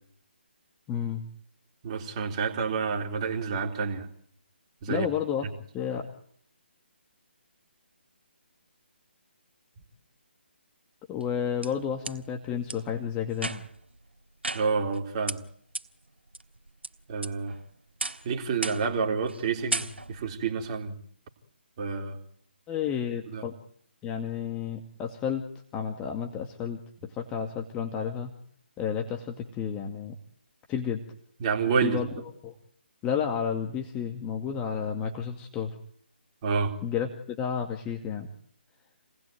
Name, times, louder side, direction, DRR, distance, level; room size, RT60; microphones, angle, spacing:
voice 1, 0.9-1.2 4.9-6.1 11.1-13.6 22.7-23.5 24.0-25.4 25.7-28.3 28.8-30.2 30.7-31.0 31.8-32.1 32.4-32.5 33.0-35.8 36.8-38.3, left 8 dB, 15° left, 2 dB, 2.2 m, -31 dB
voice 2, 1.8-4.1 4.8-5.1 14.5-15.4 17.1-17.6 18.2-21.0 21.8-22.2 23.3-23.4 31.4-32.2 36.4-36.7, right 5 dB, 30° right, 3 dB, 3.7 m, -29 dB
sound 1, 11.2-12.2 12.7-12.8 13.3-13.8 14.4-15.0 15.3-15.4 15.7-15.8 16.3-16.9 17.2-17.6 18.0-18.3 18.6-19.0 19.3-19.4 19.7-20.3, right 2 dB, 75° right, 3.3 m, -34 dB
30.0 x 20.0 x 9.4 m, 0.64 s
figure-of-eight pair, 145°, 6 cm